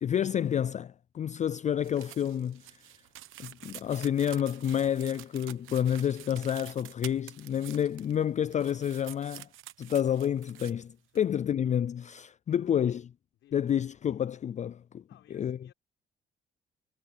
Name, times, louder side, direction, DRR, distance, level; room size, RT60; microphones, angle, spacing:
voice 1, 0.0-2.8 3.4-9.5 9.8-13.0 13.5-15.0 15.3-15.6, left 9 dB, 35° left, 0.4 m, -29 dB
sound 1, 1.8-8.2 8.5-10.7 11.1-11.2, right 14 dB, 90° right, 1.1 m, -48 dB
voice 2, 12.5-12.8 13.3-13.9 15.1-15.7, left 13 dB, 85° left, 4.3 m, -60 dB
cardioid pair, 90°, 20 cm